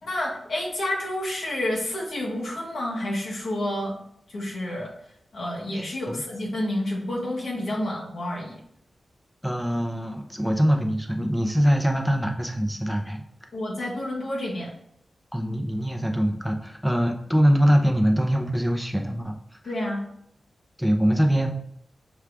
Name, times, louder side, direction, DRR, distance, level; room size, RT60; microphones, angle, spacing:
voice 1, 0.0-3.9 4.3-4.9 5.3-8.6 13.5-14.7 19.6-20.0, left 1 dB, 75° left, -3 dB, 1.3 m, -29 dB
voice 2, 5.7-6.2 9.4-13.2 15.3-19.4 20.8-21.5, equal, ahead, 3 dB, 0.5 m, -23 dB
5.9 x 2.4 x 3.4 m, 0.72 s
wide cardioid pair, 105°, 0 cm